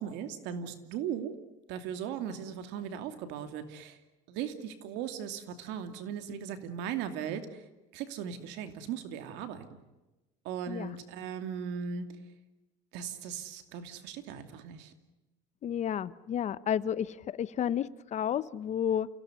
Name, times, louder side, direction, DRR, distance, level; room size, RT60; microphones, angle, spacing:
voice 1, 0.0-1.3 1.7-4.0 4.3-7.6 7.9-9.7 10.4-12.1 12.9-14.9, right 8 dB, 80° right, 8 dB, 2.6 m, -38 dB
voice 2, 15.6-19.1, left 9 dB, 40° left, 16 dB, 0.9 m, -31 dB
28.5 x 17.0 x 9.6 m, 1.1 s
cardioid pair, 125°, 18 cm